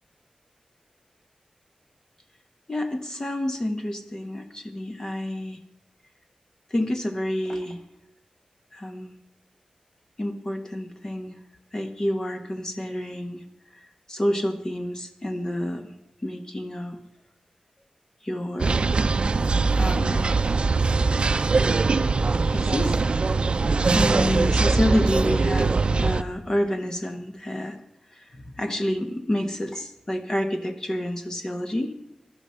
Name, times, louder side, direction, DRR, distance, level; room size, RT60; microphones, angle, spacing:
voice 1, 2.7-5.6 6.7-7.8 8.7-9.1 10.2-11.3 11.7-13.4 13.7-13.8 14.1-15.9 16.2-17.0 18.2-18.9 19.8-20.3 22.5-23.1 23.9-27.8 28.1-31.9, left 1 dB, 25° left, 6 dB, 1.2 m, -28 dB
sound 1, 18.6-26.2, right 4 dB, 50° right, 0.6 m, -22 dB
17.0 x 12.0 x 5.7 m, 0.80 s
wide cardioid pair, 120°, 2 cm